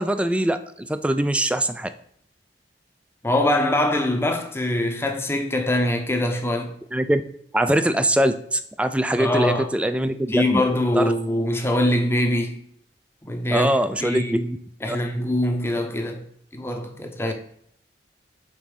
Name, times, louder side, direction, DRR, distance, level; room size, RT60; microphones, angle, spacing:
voice 1, 0.0-1.9 6.9-7.2 7.5-10.6 11.0-11.1 13.5-14.6 14.9-15.0, right 1 dB, 5° right, 0.3 m, -22 dB
voice 2, 3.2-6.8 9.2-9.7 10.3-12.6 13.2-13.7 14.0-14.3 14.8-16.2 16.5-17.3, left 1 dB, 15° left, 0.7 m, -23 dB
5.3 x 3.9 x 4.9 m
head